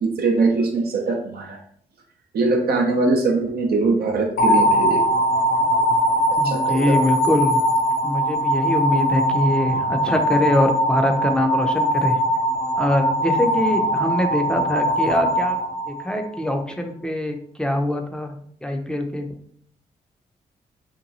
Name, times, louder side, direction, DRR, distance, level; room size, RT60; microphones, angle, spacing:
voice 1, 0.0-1.6 2.3-5.0 6.3-7.0, right 3 dB, 65° right, 1 dB, 0.6 m, -22 dB
sound 1, 4.4-16.5, equal, 65° left, 0.6 m, -21 dB
voice 2, 6.4-7.6 8.0-12.2 12.8-15.6 15.9-18.3 18.6-19.3, left 1 dB, 5° left, 4 dB, 0.6 m, -23 dB
2.9 x 2.2 x 2.6 m, 0.62 s
supercardioid pair, 45°, 18 cm